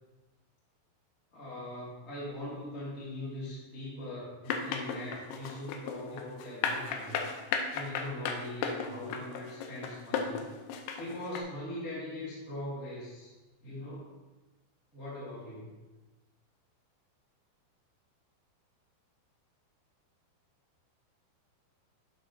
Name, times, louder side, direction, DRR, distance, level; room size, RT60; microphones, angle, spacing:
voice 1, 1.3-7.2 7.7-10.5 11.0-13.3 13.6-14.1 14.9-15.8, left 1 dB, 20° left, -9 dB, 1.8 m, -41 dB
sound 1, 4.5-11.4, left 6 dB, 80° left, 2.4 m, -34 dB
11.5 x 4.2 x 3.9 m, 1.2 s
omnidirectional pair, 5.2 m